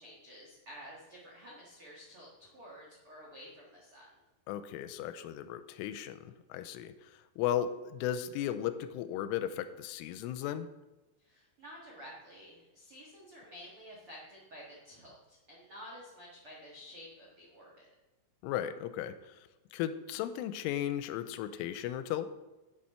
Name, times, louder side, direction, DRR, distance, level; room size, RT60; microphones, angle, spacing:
voice 1, 0.0-4.1 11.2-17.9, equal, 75° right, -4 dB, 1.2 m, -51 dB
voice 2, 4.5-10.7 18.4-22.3, left 11 dB, 85° left, 11 dB, 3.1 m, -36 dB
10.0 x 8.8 x 4.3 m, 1.1 s
omnidirectional pair, 5.7 m